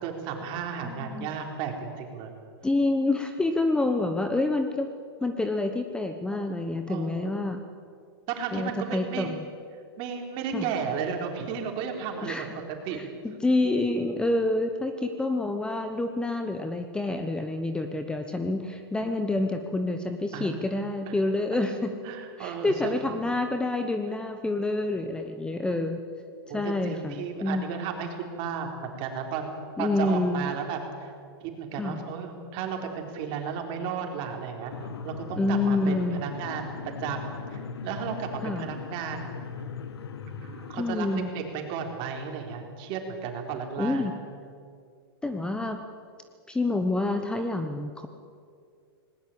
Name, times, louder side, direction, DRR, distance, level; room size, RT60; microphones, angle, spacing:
voice 1, 0.0-2.3 6.9-7.4 8.3-9.3 10.0-13.0 20.3-20.5 21.1-21.2 22.0-23.0 26.5-28.1 28.3-29.5 29.8-31.1 31.4-36.7 37.0-39.3 40.3-44.1, right 6 dB, 40° right, 3 dB, 4.0 m, -34 dB
voice 2, 0.8-1.3 2.6-4.9 5.2-7.6 8.5-9.4 10.5-10.7 12.2-12.5 12.9-21.9 22.4-26.0 26.5-27.7 29.8-30.5 31.8-32.0 35.4-36.2 38.4-38.6 40.8-41.3 43.8-44.1 45.2-45.8 46.5-48.1, left 2 dB, 5° left, 7 dB, 1.0 m, -28 dB
sound 1, 34.7-41.2, left 4 dB, 85° left, 1.8 m, -39 dB
19.5 x 19.0 x 8.7 m, 2.3 s
hypercardioid pair, 135°, 13 cm